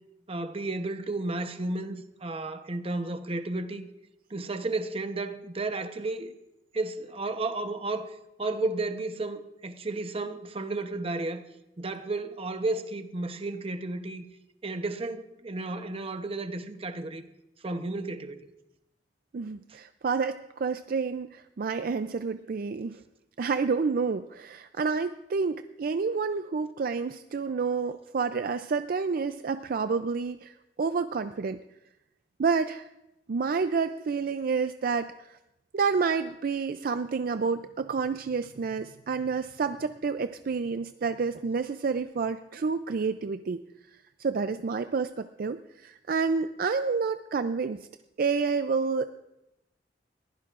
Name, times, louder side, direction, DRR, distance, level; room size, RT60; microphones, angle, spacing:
voice 1, 0.3-3.9 4.3-6.3 6.7-11.4 11.8-14.2 14.6-17.2 17.6-18.5, right 2 dB, 35° right, 0.8 m, -33 dB
voice 2, 19.3-23.0 23.4-31.6 32.4-32.9 33.3-35.4 35.7-43.6 44.2-47.8 48.2-49.1, right 5 dB, 55° right, 0.4 m, -29 dB
21.5 x 15.5 x 2.5 m
head